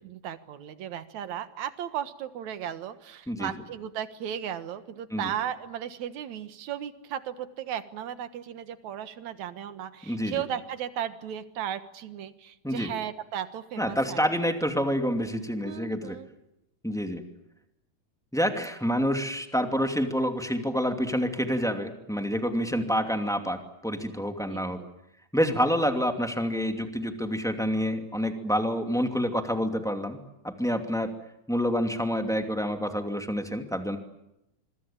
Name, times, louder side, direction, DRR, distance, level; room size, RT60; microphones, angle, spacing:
voice 1, 0.0-14.3 15.6-16.3 24.5-24.9, right 10 dB, 70° right, 11 dB, 2.7 m, -36 dB
voice 2, 10.1-10.4 12.6-12.9 13.8-16.2 16.8-17.2 18.3-24.8 25.3-31.1 31.5-34.0, equal, ahead, 5 dB, 2.1 m, -28 dB
26.5 x 23.5 x 8.8 m, 0.87 s
omnidirectional pair, 3.5 m